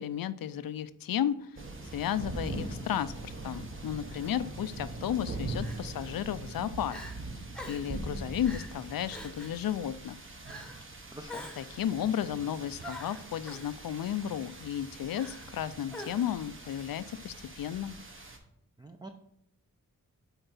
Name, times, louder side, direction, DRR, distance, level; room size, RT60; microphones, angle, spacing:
voice 1, 0.0-1.5 1.9-7.0 7.7-10.2 11.6-18.0, left 10 dB, 85° left, 15 dB, 0.5 m, -33 dB
sound 1, 1.6-18.4, right 2 dB, 35° right, 1.1 m, -42 dB
Crying sobbing, 4.1-4.3 5.6-6.1 6.5-6.6 6.9-7.1 7.5-7.9 8.4-8.7 9.1-9.6 10.4-10.8 11.3-11.8 12.8-13.7 15.1-15.6 15.9-16.4, left 1 dB, 5° left, 1.0 m, -45 dB
voice 2, 11.1-11.5 18.8-19.1, right 1 dB, 15° right, 3 dB, 0.4 m, -45 dB
7.9 x 4.5 x 4.0 m, 0.77 s
wide cardioid pair, 130°, 34 cm